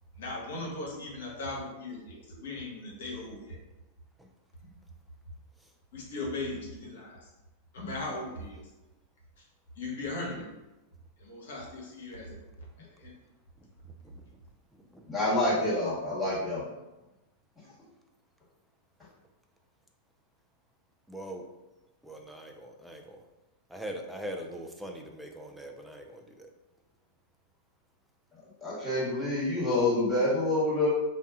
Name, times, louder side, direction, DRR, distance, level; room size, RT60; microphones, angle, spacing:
voice 1, 0.2-3.6 4.6-4.7 5.9-7.1 7.7-8.7 9.8-10.4 11.2-12.4 12.8-13.1, left 2 dB, 70° left, -2 dB, 1.0 m, -38 dB
voice 2, 15.1-16.6 28.6-30.9, left 2 dB, 15° left, -9 dB, 1.4 m, -27 dB
voice 3, 21.1-21.4 22.0-23.2 23.7-26.5, equal, 5° right, 2 dB, 0.4 m, -41 dB
2.6 x 2.3 x 3.5 m, 1.0 s
hypercardioid pair, 100°, 0 cm